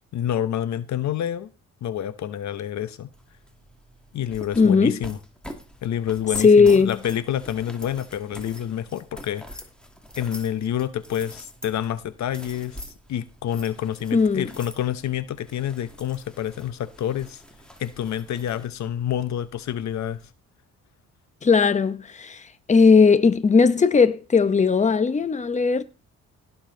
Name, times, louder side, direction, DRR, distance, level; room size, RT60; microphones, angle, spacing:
voice 1, 0.1-1.5 1.8-3.1 4.1-5.2 5.8-9.6 10.2-17.4 17.8-20.2, left 10 dB, 65° left, 0.9 m, -28 dB
sound 1, 3.1-20.3, equal, 5° left, 2.3 m, -45 dB
voice 2, 4.6-5.0 6.4-7.0 14.1-14.5 21.4-25.8, left 5 dB, 25° left, 1.0 m, -17 dB
17.0 x 7.1 x 3.9 m
cardioid pair, 90°, 30 cm